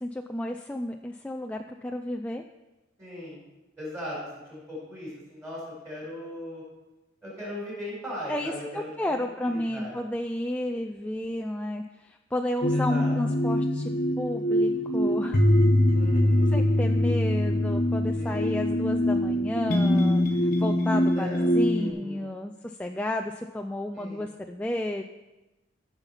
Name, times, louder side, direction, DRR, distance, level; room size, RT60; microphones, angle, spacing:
voice 1, 0.0-2.4 8.3-13.9 14.2-15.4 16.5-25.0, left 1 dB, 5° left, 3 dB, 0.4 m, -32 dB
voice 2, 3.0-3.4 3.8-4.2 4.5-6.6 7.2-9.1 9.4-10.0 12.7-13.1 15.9-16.7 18.1-18.7 21.1-21.5 21.8-22.3 23.9-24.3, left 1 dB, 15° right, -6 dB, 4.4 m, -38 dB
sound 1, 12.6-21.9, left 1 dB, 45° left, 1.2 m, -23 dB
14.5 x 5.8 x 5.6 m, 1.1 s
head